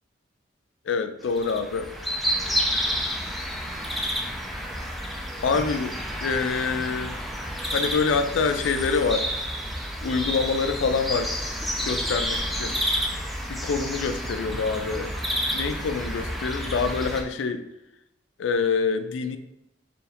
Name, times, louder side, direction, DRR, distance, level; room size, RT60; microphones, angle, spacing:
voice 1, 0.9-1.9 5.4-7.1 7.7-9.3 10.0-11.3 11.8-12.8 13.5-15.1 15.5-17.6 18.4-19.4, left 5 dB, 80° left, 10 dB, 0.4 m, -26 dB
sound 1, 1.3-17.2, equal, ahead, 0.4 m, -30 dB
4.7 x 2.6 x 3.4 m, 0.89 s
head